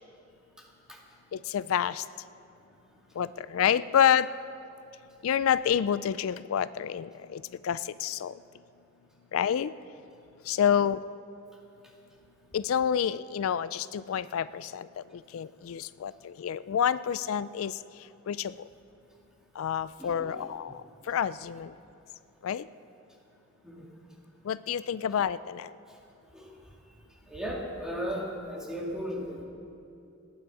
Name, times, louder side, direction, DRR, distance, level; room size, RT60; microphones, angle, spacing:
voice 1, 1.3-2.0 3.2-4.3 5.2-8.3 9.3-9.7 10.5-11.0 12.5-14.9 15.3-17.8 18.3-18.5 19.6-20.7 21.1-21.7 22.4-22.7 24.5-25.7, left 8 dB, 90° left, 16 dB, 0.4 m, -28 dB
voice 2, 20.0-20.5 23.6-23.9 25.9-26.0 26.3-26.5 27.3-29.4, equal, 5° right, -3 dB, 2.3 m, -36 dB
28.5 x 9.6 x 4.8 m, 2.8 s
head